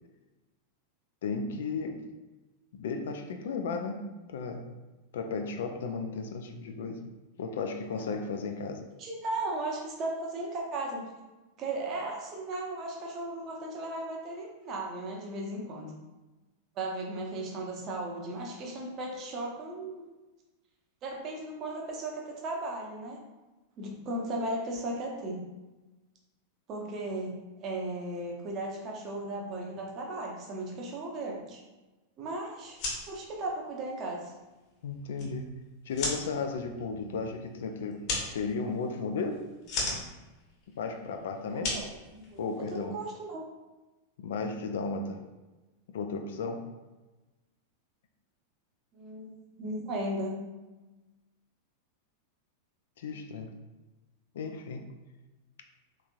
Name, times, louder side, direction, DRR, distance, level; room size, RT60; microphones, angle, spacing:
voice 1, 1.2-2.0 2.7-4.7 5.1-7.0 7.4-8.8 34.8-35.5 35.9-38.1 38.3-39.5 40.7-41.8 42.4-43.0 44.2-45.2 45.9-46.7 53.0-53.5 54.3-54.9, left 4 dB, 60° left, 5 dB, 0.3 m, -34 dB
voice 2, 9.0-11.1 11.6-15.9 16.8-20.0 21.0-23.2 23.8-25.4 26.7-27.4 27.6-31.6 32.2-32.8 33.1-34.3 41.5-43.4 48.9-50.4, right 2 dB, 35° right, -1 dB, 0.7 m, -36 dB
sound 1, 32.6-42.8, left 2 dB, 45° left, 1.2 m, -38 dB
3.4 x 2.9 x 2.4 m, 1.1 s
figure-of-eight pair, 90°, 0 cm